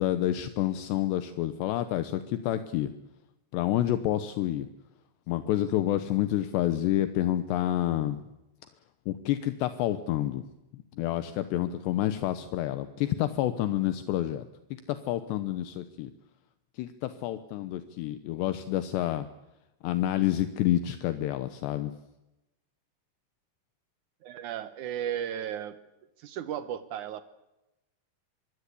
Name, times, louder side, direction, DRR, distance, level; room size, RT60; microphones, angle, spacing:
voice 1, 0.0-2.9 3.5-4.7 5.3-8.2 9.1-10.5 10.7-14.5 14.9-16.1 16.8-19.3 19.8-21.9, left 13 dB, 80° left, 10 dB, 3.2 m, -28 dB
voice 2, 24.2-25.8 26.2-27.2, right 10 dB, 85° right, 11 dB, 1.7 m, -35 dB
25.0 x 23.0 x 8.5 m, 0.95 s
omnidirectional pair, 5.0 m